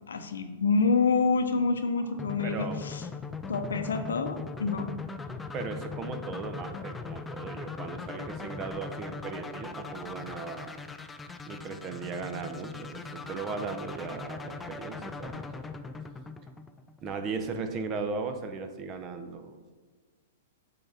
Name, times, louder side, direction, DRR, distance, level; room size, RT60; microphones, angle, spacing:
voice 1, 0.1-3.0 3.5-4.9, left 4 dB, 85° left, 8 dB, 0.6 m, -27 dB
sound 1, 2.2-17.1, left 4 dB, 10° left, 0.4 m, -40 dB
voice 2, 2.4-2.8 5.5-10.8 11.4-15.4 17.0-19.6, right 4 dB, 30° right, 7 dB, 0.7 m, -37 dB
8.5 x 3.8 x 3.4 m, 1.4 s
hypercardioid pair, 120°, 0 cm